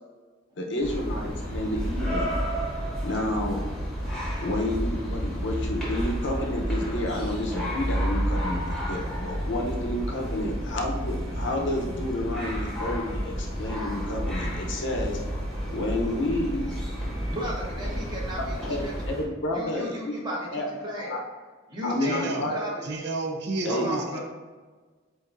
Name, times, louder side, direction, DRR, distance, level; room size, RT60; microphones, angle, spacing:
voice 1, 0.6-2.4 3.0-3.6 4.4-15.2 15.7-16.6 18.3-20.7 21.0-21.2 21.8-22.5 23.6-23.9, left 1 dB, 60° left, 1 dB, 0.7 m, -30 dB
sound 1, 0.8-19.2, equal, 5° left, 1.1 m, -31 dB
voice 2, 17.3-18.5 18.8-19.1 19.5-20.4 20.8-21.2 21.7-23.0 23.7-24.2, equal, 20° right, -4 dB, 1.0 m, -34 dB
voice 3, 22.0-22.5 22.8-24.2, right 3 dB, 55° right, 2 dB, 0.5 m, -31 dB
7.8 x 2.7 x 2.5 m, 1.4 s
head